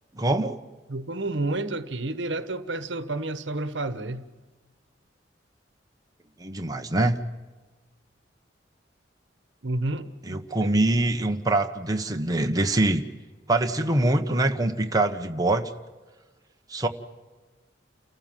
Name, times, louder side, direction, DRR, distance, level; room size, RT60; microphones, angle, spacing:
voice 1, 0.1-0.6 6.4-7.2 10.3-13.0 13.5-15.7 16.7-16.9, right 2 dB, 20° right, 1.2 m, -24 dB
voice 2, 0.9-4.2 9.6-10.4, right 2 dB, 75° right, 1.3 m, -30 dB
29.5 x 15.0 x 7.5 m
head